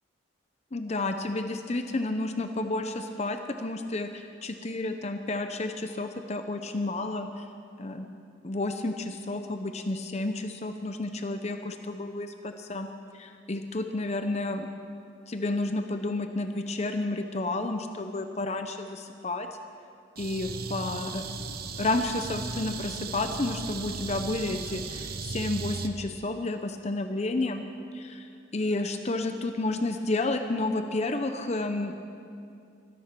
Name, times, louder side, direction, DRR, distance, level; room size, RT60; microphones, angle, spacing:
voice 1, 0.7-7.5 7.8-8.1 8.4-12.9 13.1-14.7 15.3-19.5 20.2-21.2 21.8-27.6 27.9-31.9, left 2 dB, 35° left, 7 dB, 0.7 m, -31 dB
sound 1, 20.2-25.9, right 4 dB, 50° right, 0.8 m, -36 dB
23.0 x 10.5 x 6.0 m, 2.5 s
head